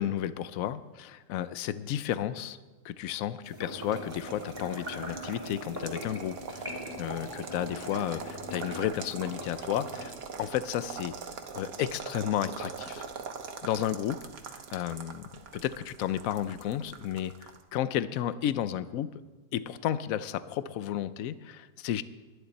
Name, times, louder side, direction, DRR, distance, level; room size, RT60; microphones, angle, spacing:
voice 1, 0.0-2.6 2.8-11.1 11.5-13.1 13.6-14.2 14.5-19.1 19.5-22.0, left 11 dB, 65° left, 14 dB, 1.0 m, -32 dB
sound 1, 3.4-10.1, left 1 dB, 15° right, 3.0 m, -41 dB
sound 2, 4.1-17.6, right 6 dB, 85° right, 1.7 m, -43 dB
22.0 x 10.5 x 4.2 m, 1.2 s
omnidirectional pair, 1.7 m